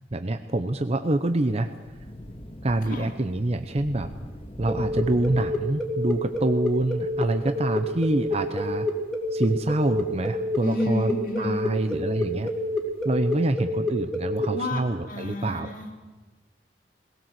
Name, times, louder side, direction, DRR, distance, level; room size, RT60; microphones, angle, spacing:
voice 1, 0.1-1.7 2.6-4.1 4.6-8.9 9.3-12.5 13.0-15.7, right 2 dB, 35° right, 9 dB, 0.7 m, -26 dB
Thunder / Rain, 1.0-13.5, equal, 35° left, 2.1 m, -44 dB
sound 1, 4.7-14.5, left 2 dB, ahead, 2.5 m, -28 dB
voice 2, 10.6-11.7 14.5-15.9, left 1 dB, 50° left, -3 dB, 2.3 m, -31 dB
21.0 x 17.5 x 7.7 m, 1.3 s
head